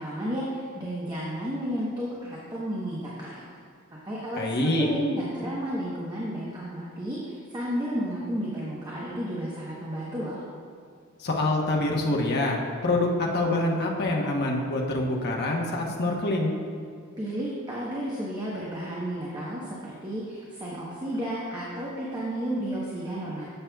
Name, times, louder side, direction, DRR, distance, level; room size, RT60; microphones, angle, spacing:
voice 1, 0.0-3.4 4.0-10.4 17.2-23.4, equal, 20° right, -6 dB, 1.0 m, -32 dB
voice 2, 4.4-4.9 11.2-16.5, left 2 dB, 50° left, -1 dB, 1.0 m, -26 dB
11.0 x 7.5 x 2.3 m, 2.2 s
head